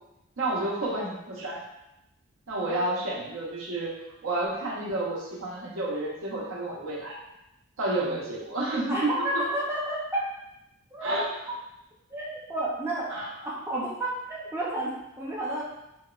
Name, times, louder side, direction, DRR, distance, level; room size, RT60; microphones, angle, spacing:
voice 1, 0.4-1.6 2.5-3.9 4.2-7.2 7.8-9.4 11.0-11.2 13.1-13.3, right 2 dB, 85° right, -3 dB, 0.7 m, -30 dB
voice 2, 8.9-10.2 10.9-11.2 12.1-13.1 13.4-15.6, right 1 dB, 10° right, -6 dB, 0.3 m, -31 dB
2.8 x 2.1 x 2.3 m, 0.88 s
head